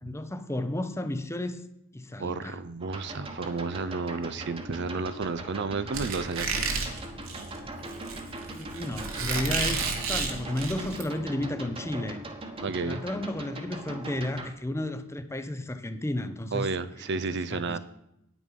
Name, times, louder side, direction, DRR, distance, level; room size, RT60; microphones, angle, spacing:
voice 1, 0.0-1.6 1.9-2.6 8.5-12.2 12.8-16.7 17.0-17.1 17.5-17.8, left 1 dB, 15° left, 0.7 m, -33 dB
voice 2, 2.2-6.7 12.6-13.0 16.5-17.8, right 4 dB, 55° right, 0.6 m, -32 dB
sound 1, 2.8-14.5, right 1 dB, 25° right, 1.3 m, -40 dB
Squeak, 5.9-11.0, right 4 dB, 75° right, 1.9 m, -31 dB
9.6 x 9.3 x 5.3 m
head